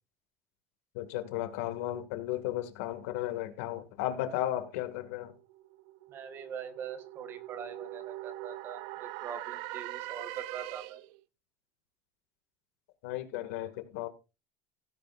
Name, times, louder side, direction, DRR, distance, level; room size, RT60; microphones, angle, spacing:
voice 1, 0.9-5.4 13.0-14.1, left 13 dB, 90° left, 2.2 m, -34 dB
sound 1, 5.0-11.2, right 17 dB, 60° right, 0.7 m, -43 dB
voice 2, 6.1-11.0, right 7 dB, 30° right, 1.6 m, -43 dB
16.5 x 10.5 x 2.6 m
cardioid pair, 170°, 7 cm